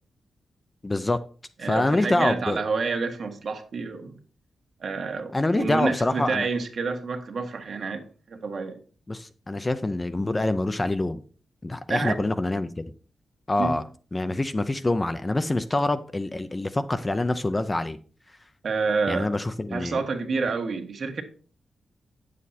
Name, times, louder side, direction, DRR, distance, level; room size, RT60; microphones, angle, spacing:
voice 1, 0.8-1.2 1.6-2.6 5.3-6.5 9.1-11.2 11.6-12.9 13.5-13.8 14.1-18.0 19.1-20.0, left 2 dB, 15° left, 11 dB, 0.5 m, -25 dB
voice 2, 1.6-4.2 4.8-8.0 8.3-8.8 11.9-12.3 13.6-13.7 18.6-19.3 19.7-21.2, right 4 dB, 55° right, 5 dB, 1.5 m, -28 dB
9.3 x 7.4 x 4.2 m, 0.40 s
wide cardioid pair, 165°, 0 cm